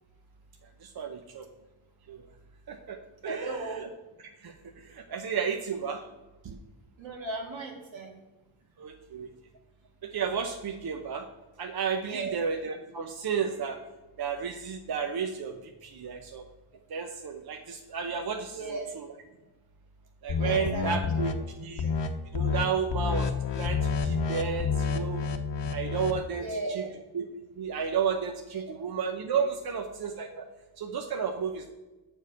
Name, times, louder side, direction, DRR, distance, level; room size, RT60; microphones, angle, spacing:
voice 1, 0.8-1.5 2.1-2.2 2.7-3.0 3.2-3.9 4.4-6.1 6.4-6.6 8.8-9.3 10.0-11.3 11.6-13.8 14.2-16.4 16.9-19.1 20.2-21.3 21.6-21.9 22.3-25.2 25.7-26.8 27.1-27.3 27.6-30.4 30.8-31.7, right 6 dB, 50° right, 4 dB, 0.8 m, -32 dB
voice 2, 3.2-3.8 7.0-8.2 12.0-12.3 18.5-18.9 20.4-21.0 21.7-22.0 26.3-26.9 28.5-28.7 29.3-29.5, right 3 dB, 75° right, 0 dB, 2.1 m, -37 dB
sound 1, 20.3-21.3 21.8-22.1 22.3-22.6 22.9-26.2, left 5 dB, 65° left, 0.9 m, -29 dB
7.2 x 4.7 x 7.0 m, 1.1 s
cardioid pair, 80°, 46 cm